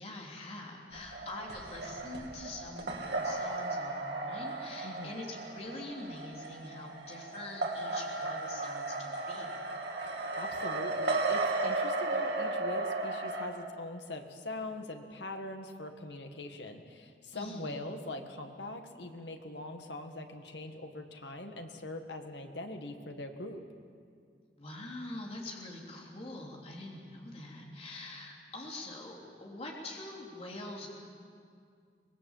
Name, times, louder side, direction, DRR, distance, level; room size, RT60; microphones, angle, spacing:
voice 1, 0.0-9.6 17.3-17.8 24.6-30.9, left 2 dB, 35° left, -2 dB, 3.3 m, -44 dB
sound 1, 0.9-13.5, right 2 dB, 75° right, 2.7 m, -35 dB
voice 2, 4.8-5.2 10.0-23.6, left 2 dB, 80° left, 5 dB, 1.8 m, -42 dB
24.5 x 19.5 x 7.4 m, 2.2 s
head